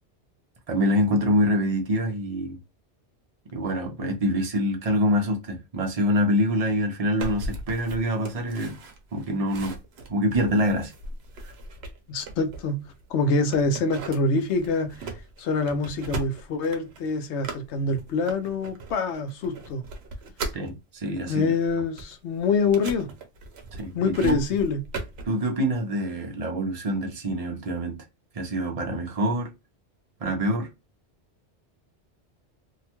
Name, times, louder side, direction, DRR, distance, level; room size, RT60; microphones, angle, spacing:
voice 1, 0.7-2.6 3.5-8.8 9.1-9.8 10.1-10.9 11.4-11.5 20.5-21.5 23.7-24.4 25.3-28.0 28.3-29.5 30.2-30.7, equal, 40° right, 0.6 m, -25 dB
sound 1, 7.2-13.1 13.5-20.7 21.2-25.3, right 2 dB, 70° right, 0.9 m, -38 dB
voice 2, 12.1-12.8 13.1-15.0 15.4-19.8 21.3-23.1 23.9-24.8, left 3 dB, 85° left, 0.9 m, -25 dB
2.8 x 2.2 x 2.9 m
omnidirectional pair, 1.1 m